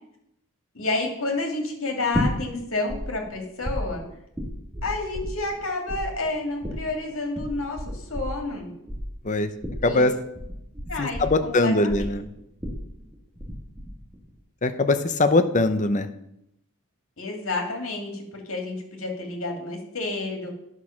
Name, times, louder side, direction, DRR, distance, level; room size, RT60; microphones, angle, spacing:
voice 1, 0.7-4.0 4.8-8.7 9.8-10.0 10.9-12.2 17.2-20.5, left 2 dB, 65° left, 2 dB, 2.4 m, -30 dB
sound 1, 2.1-3.0 3.2-5.6 5.9-13.5 13.8-14.3, equal, 15° right, 2.0 m, -32 dB
voice 2, 9.8-10.1 11.0-12.2 14.6-16.1, left 2 dB, 35° left, 10 dB, 0.7 m, -21 dB
9.9 x 6.4 x 5.8 m, 0.79 s
head